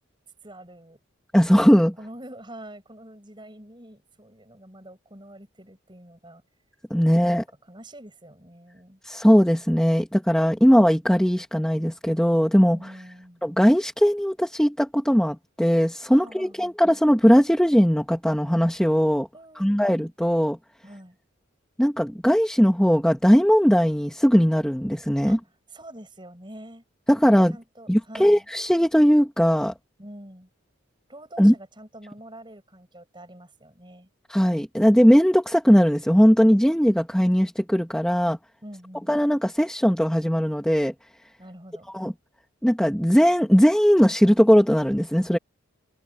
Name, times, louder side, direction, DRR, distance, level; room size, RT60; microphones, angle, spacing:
voice 1, 0.4-1.0 2.0-6.4 7.0-9.0 12.7-13.4 16.1-16.8 19.3-19.8 20.8-21.2 25.2-25.4 25.7-26.8 27.5-28.5 30.0-30.5 31.1-34.1 38.6-39.2 41.4-41.9, right 1 dB, 20° right, 6.7 m, -45 dB
voice 2, 1.3-1.9 6.9-7.4 9.0-12.8 13.4-19.3 19.6-20.6 21.8-25.4 27.1-27.5 27.9-29.7 31.4-31.5 34.3-38.4 39.1-40.9 41.9-42.1 42.6-45.4, equal, 5° left, 1.4 m, -19 dB
head